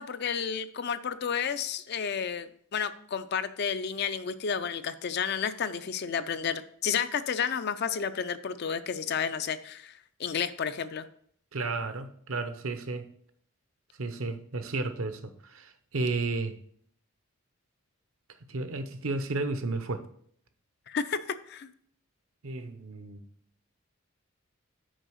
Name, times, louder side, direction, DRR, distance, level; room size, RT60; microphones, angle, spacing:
voice 1, 0.0-9.9 10.2-11.1 20.9-21.7, left 7 dB, 50° left, 0.4 m, -31 dB
voice 2, 11.5-13.1 14.0-16.6 18.5-20.1 22.4-23.2, right 3 dB, 70° right, 0.8 m, -33 dB
6.3 x 4.9 x 6.3 m
head